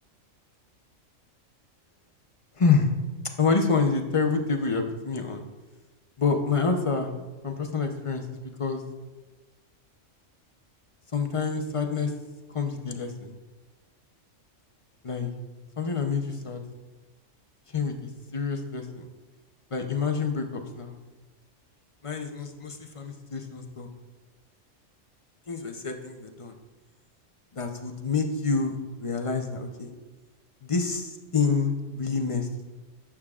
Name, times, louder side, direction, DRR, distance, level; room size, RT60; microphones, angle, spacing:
voice 1, 2.6-2.9 3.4-5.4 6.2-7.1 7.4-8.2 8.6-8.8 11.1-12.1 12.5-13.3 15.0-15.3 15.8-16.6 17.7-17.9 18.3-19.0 19.7-20.9 22.0-23.9 25.5-26.5 27.5-29.9 30.6-32.6, left 5 dB, 35° left, 4 dB, 0.6 m, -27 dB
11.5 x 7.3 x 2.4 m, 1.2 s
omnidirectional pair, 1.3 m